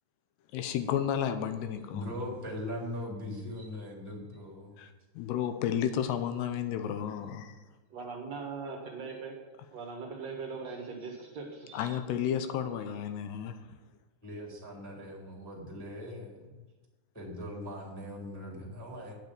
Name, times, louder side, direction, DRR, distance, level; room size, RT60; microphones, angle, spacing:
voice 1, 0.5-2.1 4.8-7.6 11.7-13.6, left 9 dB, 80° left, 9 dB, 2.7 m, -32 dB
voice 2, 1.9-4.8 14.2-16.4 17.1-19.1, left 1 dB, 5° left, -3 dB, 2.0 m, -40 dB
voice 3, 7.9-9.4 9.7-12.0, right 4 dB, 60° right, 0 dB, 1.8 m, -40 dB
9.7 x 7.3 x 8.0 m, 1.2 s
omnidirectional pair, 5.1 m